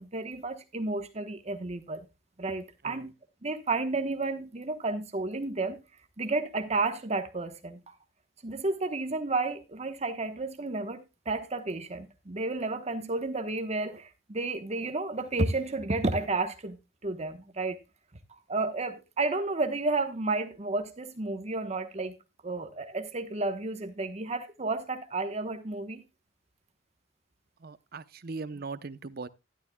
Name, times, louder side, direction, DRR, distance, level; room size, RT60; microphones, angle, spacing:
voice 1, 0.0-2.0 2.4-3.1 3.4-5.8 6.2-7.8 8.4-17.8 18.5-22.2 22.4-26.0, right 3 dB, 35° right, 1.1 m, -32 dB
voice 2, 27.6-29.3, right 4 dB, 55° right, 0.8 m, -39 dB
13.0 x 11.5 x 2.2 m
head